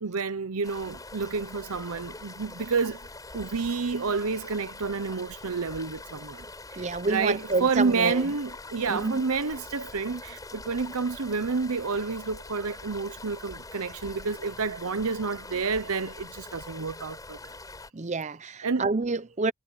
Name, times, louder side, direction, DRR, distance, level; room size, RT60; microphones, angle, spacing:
voice 1, 0.0-3.0 3.3-6.5 6.7-17.4 18.6-18.9, right 4 dB, 85° right, 0.9 m, -29 dB
sound 1, 0.6-17.9, left 2 dB, 15° left, 7.4 m, -44 dB
voice 2, 6.8-8.3 8.9-9.2 17.9-19.5, right 3 dB, 30° right, 0.7 m, -28 dB
head